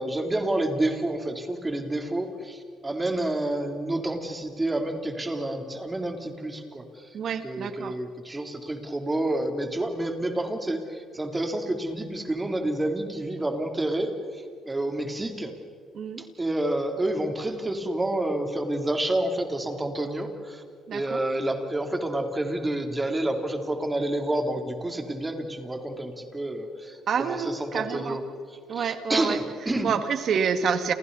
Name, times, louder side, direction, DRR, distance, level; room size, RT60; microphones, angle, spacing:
voice 1, 0.0-7.1 7.4-15.6 16.2-20.6 20.9-28.2 28.5-29.9, right 1 dB, 15° right, 4 dB, 3.5 m, -29 dB
voice 2, 7.1-7.9 15.9-16.3 20.9-21.2 27.1-28.2 28.7-29.4 29.8-30.9, right 6 dB, 55° right, 8 dB, 2.2 m, -28 dB
29.5 x 29.5 x 4.2 m, 2.3 s
cardioid pair, 105°, 0 cm